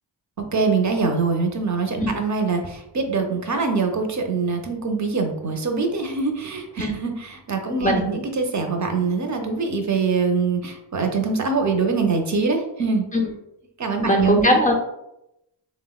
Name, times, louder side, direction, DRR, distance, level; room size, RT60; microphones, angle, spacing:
voice 1, 0.4-13.0 13.8-14.6, right 4 dB, 40° right, 4 dB, 0.5 m, -23 dB
voice 2, 14.0-14.7, left 1 dB, 15° left, 2 dB, 0.5 m, -19 dB
3.4 x 2.0 x 2.3 m, 0.85 s
cardioid pair, 55°, 49 cm